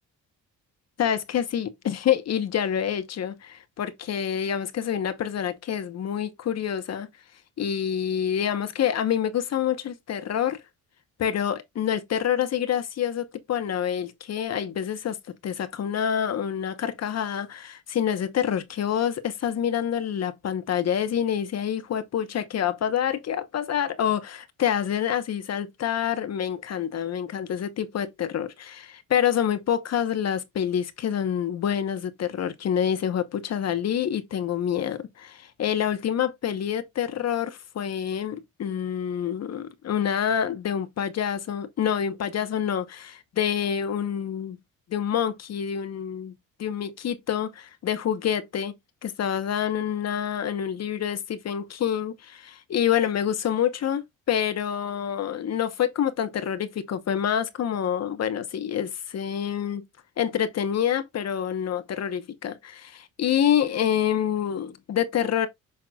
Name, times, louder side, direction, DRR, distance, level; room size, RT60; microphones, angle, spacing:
voice 1, 1.0-7.1 7.6-10.6 11.2-15.2 15.4-44.6 44.9-46.3 46.6-48.7 49.0-59.8 60.2-65.5, left 9 dB, 50° left, 1.0 m, -27 dB
7.6 x 5.8 x 2.3 m
cardioid pair, 135°, 33 cm